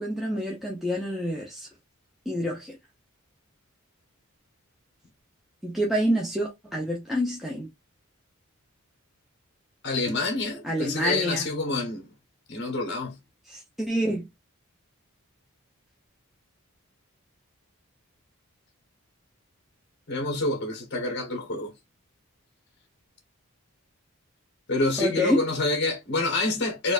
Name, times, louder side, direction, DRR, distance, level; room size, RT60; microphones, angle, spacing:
voice 1, 0.0-1.7 2.3-2.8 5.6-7.7 10.6-11.5 13.5-14.2 25.0-25.4, equal, ahead, 0.6 m, -27 dB
voice 2, 9.8-12.1 12.5-13.2 20.1-21.7 24.7-26.9, left 2 dB, 50° left, 1.1 m, -27 dB
4.2 x 2.5 x 2.4 m
head